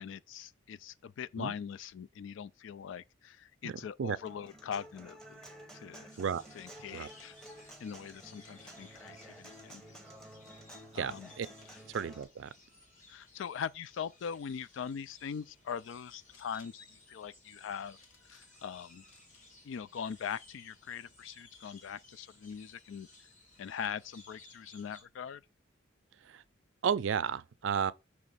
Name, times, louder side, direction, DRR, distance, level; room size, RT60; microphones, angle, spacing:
voice 1, 0.0-5.4 5.7-6.1 6.6-7.4 7.8-9.8 10.9-11.3 13.1-18.0 18.3-19.0 19.6-23.1 23.6-25.4, left 7 dB, 65° left, 0.3 m, -41 dB
voice 2, 3.6-4.2 6.2-6.4 6.9-7.1 10.9-11.5 11.9-12.5 26.2-26.4 26.8-27.9, right 7 dB, 65° right, 0.4 m, -33 dB
Human voice / Acoustic guitar, 4.2-12.2, right 1 dB, 5° left, 0.8 m, -52 dB
sound 1, 6.1-25.0, left 2 dB, 40° left, 2.2 m, -59 dB
sound 2, 15.8-16.8 18.0-18.7 19.1-19.4 20.0-20.6, left 4 dB, 90° left, 1.3 m, -64 dB
6.0 x 3.2 x 5.4 m
head